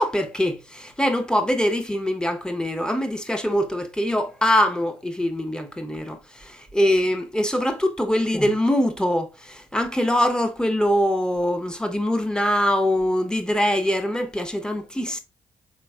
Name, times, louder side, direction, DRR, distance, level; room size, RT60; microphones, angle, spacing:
voice 1, 0.0-15.2, equal, 5° left, 0.9 m, -23 dB
4.5 x 3.5 x 2.3 m
supercardioid pair, 45°, 14 cm